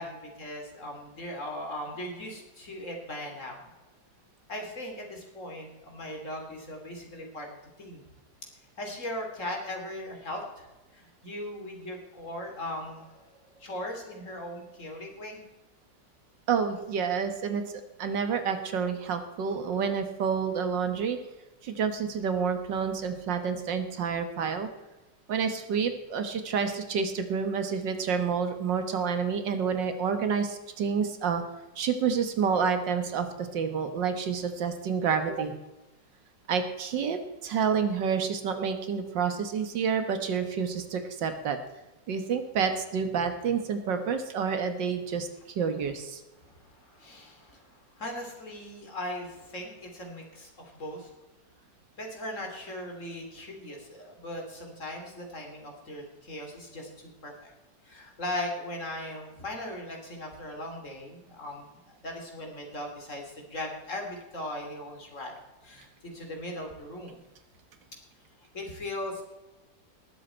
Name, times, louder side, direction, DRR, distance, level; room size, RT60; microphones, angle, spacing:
voice 1, 0.0-3.7 4.5-8.0 8.8-13.2 13.5-15.4 46.4-47.7 48.0-51.1 52.0-57.5 57.8-65.3 65.6-67.2 68.5-69.3, left 1 dB, 40° left, 2 dB, 3.2 m, -39 dB
voice 2, 16.5-17.6 18.0-21.2 21.6-24.7 25.3-31.4 31.8-35.5 36.5-41.6 42.1-45.3 45.6-46.2, right 6 dB, 80° right, 8 dB, 1.9 m, -29 dB
19.5 x 7.9 x 4.4 m, 1.1 s
omnidirectional pair, 1.9 m